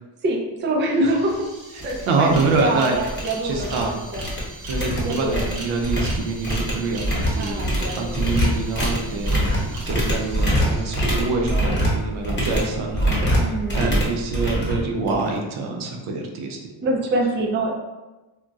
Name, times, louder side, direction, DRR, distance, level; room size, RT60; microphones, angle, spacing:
voice 1, 0.2-1.5 1.8-4.2 5.0-5.5 7.4-8.2 11.6-11.7 13.4-13.8 16.8-17.7, right 1 dB, 25° right, 0 dB, 0.4 m, -25 dB
sound 1, 0.6-0.7 0.9-11.7, right 2 dB, 45° right, 0.9 m, -40 dB
sound 2, 1.3-1.4 1.8-2.0 2.3-2.6 2.9-3.8 4.1-15.4, equal, 25° left, 0.9 m, -24 dB
voice 2, 1.7-3.0 3.4-4.0 4.7-16.6 17.2-17.4, right 3 dB, 80° right, 1 dB, 0.7 m, -26 dB
2.3 x 2.2 x 3.9 m, 1.1 s
cardioid pair, 125°, 48 cm